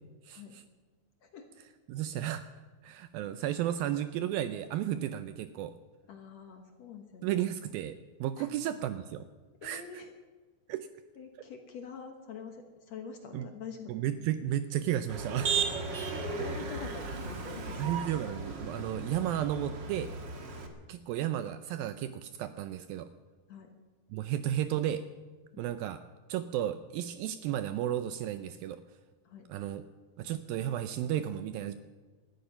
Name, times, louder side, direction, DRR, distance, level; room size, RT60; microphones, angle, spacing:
voice 1, 0.3-0.6 1.9-2.4 2.8-5.7 7.2-9.3 9.6-9.8 10.7-10.9 13.3-13.5 13.9-15.6 17.8-20.1 20.9-23.1 24.1-25.0 25.6-26.0 26.3-28.8 29.5-29.8 30.2-31.7, right 11 dB, 80° right, 11 dB, 2.2 m, -33 dB
voice 2, 6.1-7.3 8.4-8.5 9.6-10.1 11.2-13.9 15.6-15.7 16.3-18.0 23.5-23.7 25.5-25.8 29.2-29.5, left 6 dB, 65° left, 5 dB, 1.7 m, -46 dB
Motor vehicle (road), 15.1-20.7, right 4 dB, 50° right, 1.3 m, -35 dB
19.5 x 13.0 x 5.7 m, 1.4 s
omnidirectional pair, 4.5 m